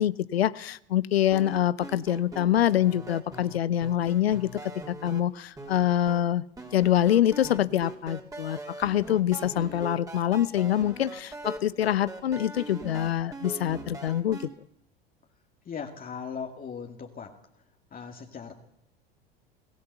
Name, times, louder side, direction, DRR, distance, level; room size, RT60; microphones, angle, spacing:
voice 1, 0.0-4.5 4.9-6.4 6.7-14.4, left 11 dB, 80° left, 18 dB, 0.8 m, -25 dB
sound 1, 1.3-5.2 5.6-6.2 6.6-14.5, right 2 dB, 10° right, 3.5 m, -41 dB
voice 2, 15.7-17.3 17.9-18.5, left 6 dB, 30° left, 2 dB, 2.3 m, -38 dB
22.5 x 15.5 x 8.1 m, 0.75 s
hypercardioid pair, 85°, 30 cm